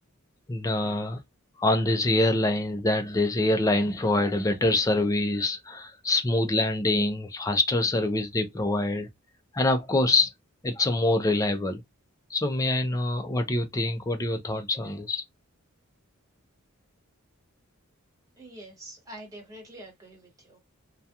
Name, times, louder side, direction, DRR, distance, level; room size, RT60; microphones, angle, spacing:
voice 1, 0.5-1.2 1.6-9.1 9.5-10.3 10.6-11.8 12.3-15.2, left 2 dB, 15° left, 0.4 m, -25 dB
voice 2, 18.4-20.6, right 1 dB, 15° right, 1.1 m, -45 dB
2.3 x 2.2 x 2.7 m
head